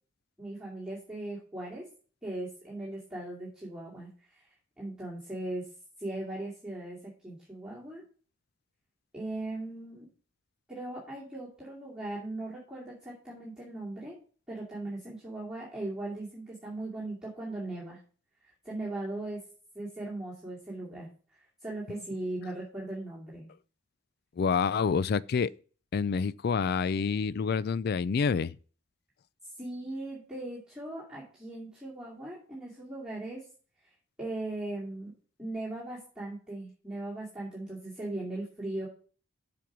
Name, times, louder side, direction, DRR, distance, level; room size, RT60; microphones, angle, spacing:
voice 1, 0.4-1.9 2.2-4.4 4.8-5.7 6.0-8.0 9.1-10.1 10.7-14.2 14.5-18.0 18.6-19.4 19.7-21.1 21.6-23.5 29.6-33.4 34.2-35.1 35.4-38.9, right 2 dB, 5° right, 2.5 m, -38 dB
voice 2, 24.4-25.5 25.9-28.6, left 5 dB, 50° left, 0.3 m, -27 dB
7.5 x 5.2 x 6.1 m
head